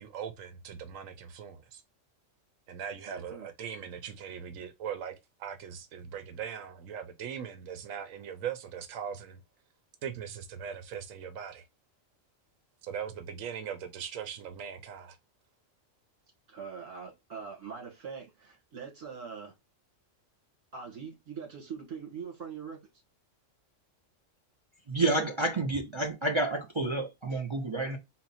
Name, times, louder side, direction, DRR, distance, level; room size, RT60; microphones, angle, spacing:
voice 1, 0.0-1.8 2.7-9.4 10.0-11.6 12.8-15.2, right 8 dB, 90° right, 1.0 m, -40 dB
voice 2, 3.1-3.5 16.5-19.5 20.7-22.8, right 6 dB, 65° right, 2.2 m, -42 dB
voice 3, 24.9-28.0, right 2 dB, 35° right, 0.4 m, -29 dB
4.2 x 2.1 x 4.0 m
omnidirectional pair, 1.3 m